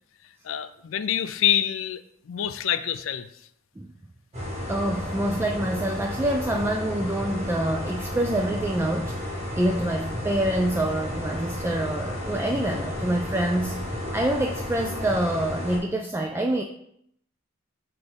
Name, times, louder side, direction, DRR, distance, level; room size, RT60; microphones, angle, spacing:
voice 1, 0.4-3.3, left 10 dB, 80° left, 12 dB, 0.4 m, -26 dB
sound 1, 4.3-15.8, left 1 dB, 35° right, 2.0 m, -32 dB
voice 2, 4.7-9.2 9.6-13.8 14.1-16.6, right 1 dB, 10° right, 2 dB, 0.3 m, -26 dB
8.2 x 3.5 x 3.4 m, 0.74 s
head